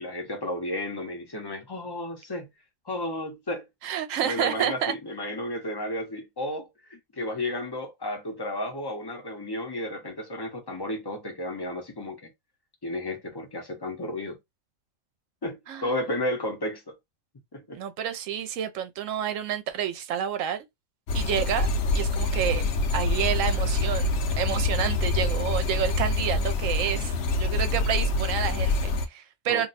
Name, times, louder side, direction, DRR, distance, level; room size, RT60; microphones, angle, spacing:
voice 1, 0.0-2.5 2.9-3.7 4.2-12.3 12.8-14.4 15.4-16.8 17.5-17.8 29.5-29.7, left 1 dB, 25° left, 0.5 m, -33 dB
voice 2, 3.8-4.9 15.7-15.9 17.7-20.7 21.1-22.6 22.9-24.1 24.4-27.1 27.4-29.7, right 9 dB, 70° right, 0.9 m, -29 dB
sound 1, 21.1-29.1, left 2 dB, 60° left, 0.7 m, -26 dB
2.6 x 2.1 x 4.0 m
omnidirectional pair, 1.4 m